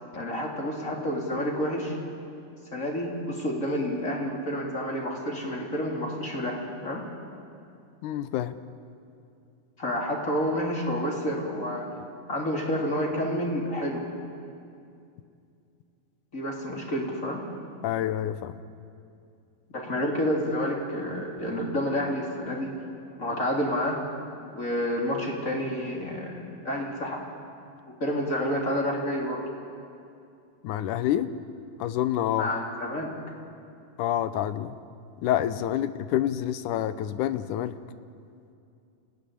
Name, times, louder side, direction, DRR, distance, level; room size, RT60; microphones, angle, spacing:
voice 1, 0.1-2.0 2.7-7.0 9.8-11.8 12.3-14.1 16.3-17.4 19.7-22.7 23.2-24.0 24.5-27.2 28.0-29.4 32.4-33.1, equal, 25° left, -1 dB, 3.5 m, -29 dB
voice 2, 8.0-8.6 17.8-18.6 30.6-31.3 31.8-32.5 34.0-34.8 35.2-37.7, left 11 dB, 80° left, 13 dB, 2.2 m, -27 dB
27.0 x 16.5 x 10.0 m, 2.5 s
omnidirectional pair, 3.8 m